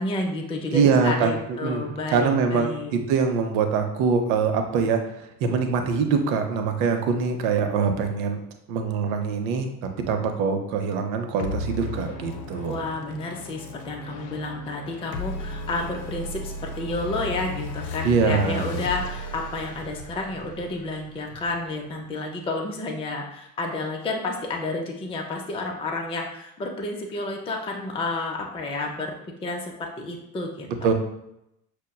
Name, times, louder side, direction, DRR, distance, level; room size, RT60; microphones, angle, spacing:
voice 1, 0.0-3.0 12.7-29.1 29.4-30.9, left 2 dB, 10° left, 0 dB, 0.5 m, -30 dB
voice 2, 0.7-8.4 8.7-12.8 18.0-18.8 30.8-30.9, right 5 dB, 55° right, 5 dB, 0.7 m, -24 dB
sound 1, 11.4-22.2, left 3 dB, 60° left, 0.7 m, -35 dB
6.3 x 2.2 x 2.2 m, 0.81 s
figure-of-eight pair, 60°, 48 cm